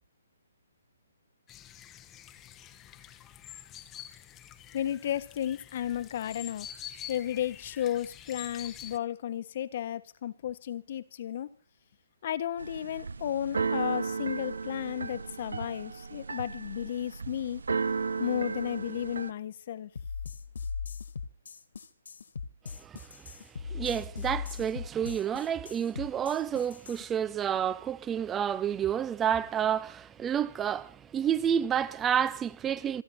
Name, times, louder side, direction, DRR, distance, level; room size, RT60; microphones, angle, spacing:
sound 1, 1.5-9.0, left 10 dB, 15° left, 1.1 m, -47 dB
voice 1, 4.7-6.7 7.1-11.5 12.2-17.6 18.2-19.9, left 11 dB, 45° left, 1.4 m, -33 dB
Keyboard (musical), 12.6-19.3, right 5 dB, 90° right, 1.1 m, -34 dB
sound 2, 20.0-27.1, left 5 dB, 75° left, 2.3 m, -39 dB
voice 2, 23.7-33.0, right 9 dB, 10° right, 0.8 m, -29 dB
27.5 x 10.5 x 4.3 m
hypercardioid pair, 160°, 0 cm